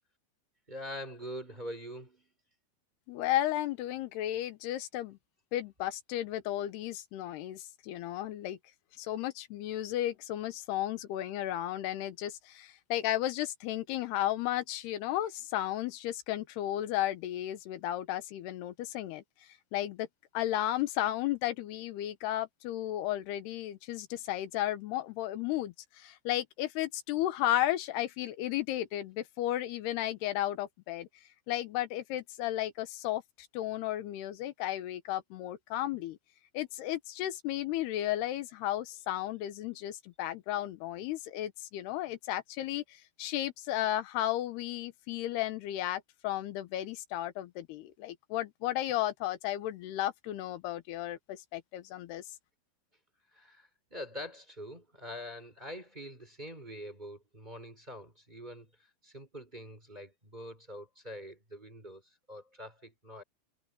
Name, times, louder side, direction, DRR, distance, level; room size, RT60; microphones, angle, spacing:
voice 1, 0.7-2.3 53.3-63.2, equal, 10° right, 4.0 m, -44 dB
voice 2, 3.1-5.2 5.5-8.6 9.0-19.2 19.7-20.1 20.3-31.1 31.5-36.2 36.5-52.2, left 13 dB, 85° left, 3.1 m, -34 dB
omnidirectional pair, 4.6 m